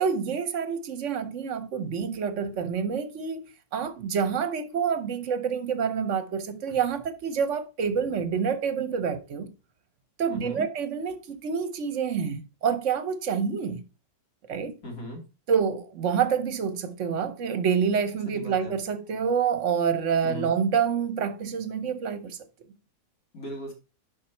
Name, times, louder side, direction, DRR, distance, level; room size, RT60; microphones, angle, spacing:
voice 1, 0.0-9.5 10.2-13.8 14.5-14.8 15.5-22.4, right 6 dB, 55° right, 1.1 m, -27 dB
voice 2, 10.3-10.6 14.8-15.2 18.2-18.7 20.2-20.6 23.3-23.7, equal, 65° left, 3.2 m, -37 dB
7.2 x 5.4 x 4.4 m
omnidirectional pair, 1.7 m